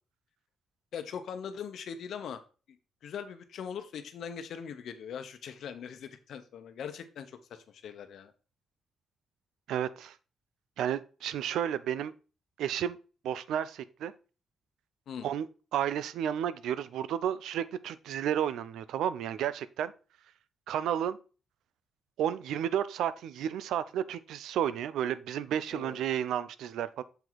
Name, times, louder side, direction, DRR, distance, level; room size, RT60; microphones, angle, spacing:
voice 1, 0.9-2.4 3.0-8.3 15.1-15.3 25.7-26.0, left 7 dB, 75° left, 0.9 m, -41 dB
voice 2, 9.7-10.2 10.8-12.1 12.6-13.0 13.2-14.1 15.2-15.5 15.7-19.9 20.7-21.2 22.2-27.0, right 10 dB, 85° right, 0.5 m, -32 dB
6.9 x 4.6 x 4.0 m
cardioid pair, 90°, 0 cm